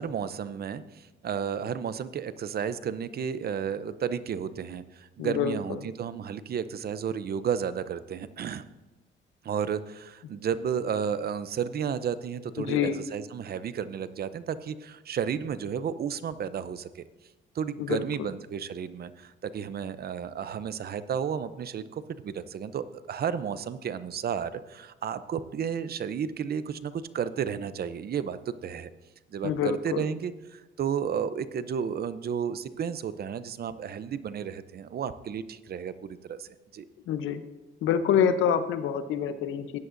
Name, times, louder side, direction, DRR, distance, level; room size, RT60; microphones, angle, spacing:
voice 1, 0.0-8.6 9.4-17.0 17.5-28.9 29.3-36.5 36.7-36.8, right 7 dB, 50° right, 14 dB, 0.7 m, -32 dB
voice 2, 5.2-5.8 12.6-13.0 17.8-18.0 29.4-30.1 37.1-37.4 37.8-39.8, left 8 dB, 85° left, 11 dB, 0.8 m, -26 dB
16.0 x 10.5 x 2.6 m, 1.1 s
cardioid pair, 90°, 20 cm